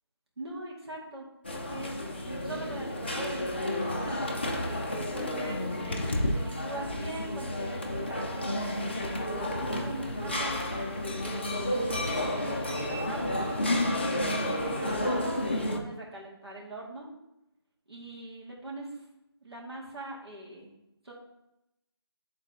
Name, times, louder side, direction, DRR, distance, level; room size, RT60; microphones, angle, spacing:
voice 1, 0.4-1.3 1.7-2.0 2.2-10.6 11.2-13.3 14.1-15.4 15.7-17.1 17.9-19.0 19.4-20.7 21.0-21.1, right 2 dB, 75° right, -3 dB, 2.2 m, -42 dB
sound 1, 1.4-15.8, left 1 dB, 25° left, 0.5 m, -31 dB
10.0 x 3.9 x 2.9 m, 0.88 s
figure-of-eight pair, 170°, 13 cm